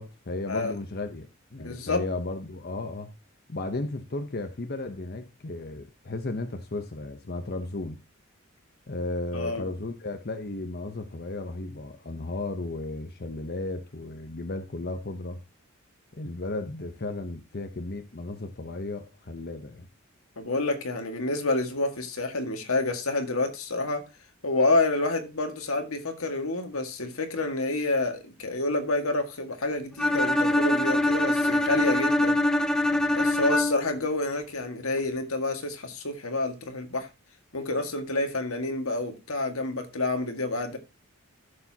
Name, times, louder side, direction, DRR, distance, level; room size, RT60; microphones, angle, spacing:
voice 1, 0.0-3.1 3.5-8.0 8.9-15.4 16.1-19.9, left 2 dB, 45° left, 0.8 m, -34 dB
voice 2, 1.6-2.1 9.3-9.6 20.4-24.0 24.4-32.4 33.1-37.1 37.5-40.8, left 2 dB, 80° left, 1.8 m, -28 dB
Bowed string instrument, 30.0-34.0, left 1 dB, 5° left, 0.5 m, -24 dB
14.0 x 6.9 x 2.8 m
head